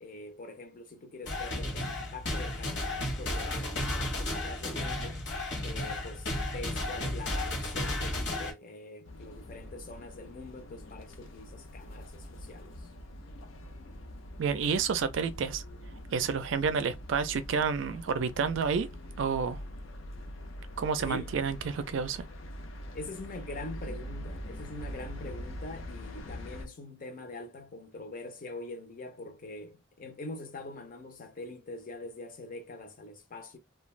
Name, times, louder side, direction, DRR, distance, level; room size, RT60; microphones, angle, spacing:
voice 1, 0.0-5.2 5.6-12.9 21.1-21.3 22.9-33.6, left 2 dB, 45° left, 0.6 m, -44 dB
sound 1, 1.2-8.5, left 1 dB, 60° left, 0.9 m, -33 dB
sound 2, 9.1-26.7, equal, 85° left, 0.6 m, -44 dB
voice 2, 14.4-15.6 16.1-18.9 19.2-19.6 20.8-22.2, right 6 dB, 70° right, 0.4 m, -29 dB
2.5 x 2.2 x 3.1 m
head